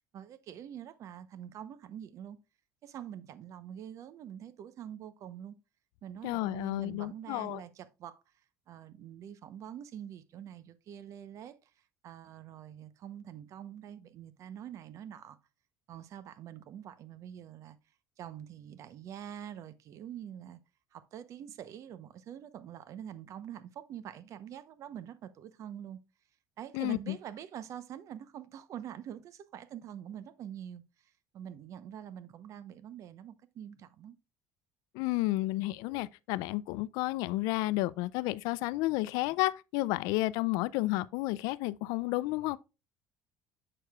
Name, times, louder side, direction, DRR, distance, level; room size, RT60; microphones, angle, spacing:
voice 1, 0.1-2.4 2.8-5.5 6.0-8.2 8.7-11.7 12.0-15.4 15.9-17.8 18.2-20.6 20.9-26.0 26.6-34.2, right 10 dB, 55° right, 0.8 m, -45 dB
voice 2, 6.2-7.6 26.7-27.2 34.9-42.6, left 19 dB, 80° left, 0.3 m, -31 dB
7.6 x 6.6 x 2.3 m
cardioid pair, 110°, 7 cm